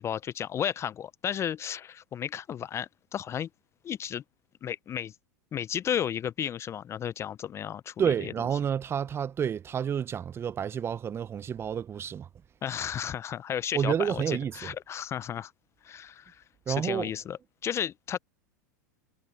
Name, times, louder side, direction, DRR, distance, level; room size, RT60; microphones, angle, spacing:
voice 1, 0.0-3.5 3.8-4.2 4.6-5.1 5.5-8.3 12.6-15.5 15.8-18.2, left 9 dB, 30° left, 0.5 m, -33 dB
voice 2, 8.0-12.3 13.7-14.7 16.7-17.1, right 8 dB, 25° right, 0.7 m, -29 dB
hypercardioid pair, 100°, 10 cm